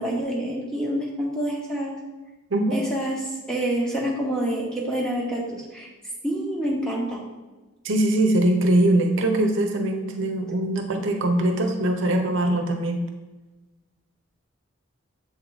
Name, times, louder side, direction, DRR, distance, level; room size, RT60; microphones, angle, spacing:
voice 1, 0.0-2.0 2.7-5.9 6.2-7.2, right 1 dB, 5° left, -3 dB, 0.9 m, -27 dB
voice 2, 2.5-2.8 7.8-13.0, right 1 dB, 70° right, 4 dB, 0.7 m, -22 dB
7.3 x 3.5 x 4.0 m, 1.1 s
head